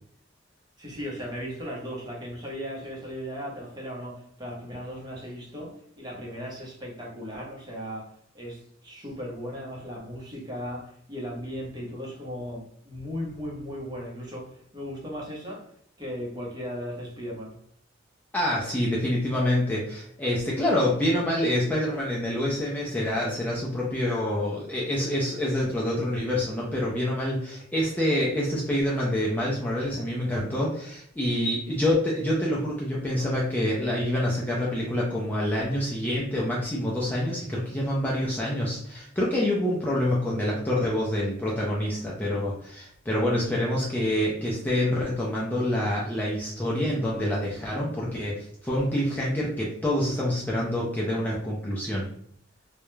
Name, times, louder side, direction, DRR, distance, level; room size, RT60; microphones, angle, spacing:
voice 1, 0.8-15.7 16.0-17.6, equal, 20° right, 0.7 m, -37 dB
voice 2, 18.3-52.1, left 1 dB, 10° left, 0.4 m, -27 dB
2.3 x 2.0 x 3.0 m
head